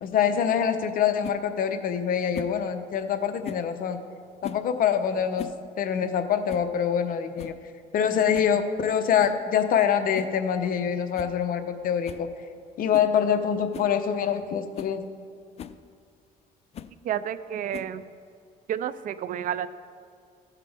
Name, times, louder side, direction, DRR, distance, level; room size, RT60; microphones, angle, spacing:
voice 1, 0.0-4.0 4.4-5.5 5.8-7.6 7.9-12.3 12.8-15.0, left 8 dB, 55° left, 8 dB, 0.8 m, -25 dB
sound 1, 1.2-1.4 2.3-2.6 3.4-3.7 4.4-4.7 5.2-5.6 5.9-6.0 6.5-6.7 7.1-7.2 7.4-7.6 8.3-8.6 9.2-9.4 10.1-10.4 10.7-10.8 11.1-11.4 11.6-11.7 12.0-12.3 12.9-13.1 13.7-13.9 14.4-14.5 14.7-15.0 15.6-15.8 16.7-17.0 17.7-18.1, left 9 dB, 40° left, 0.4 m, -39 dB
voice 2, 17.0-18.0 18.7-19.7, right 10 dB, 55° right, 14 dB, 0.4 m, -30 dB
15.5 x 5.9 x 3.5 m, 2.3 s
cardioid pair, 110°, 17 cm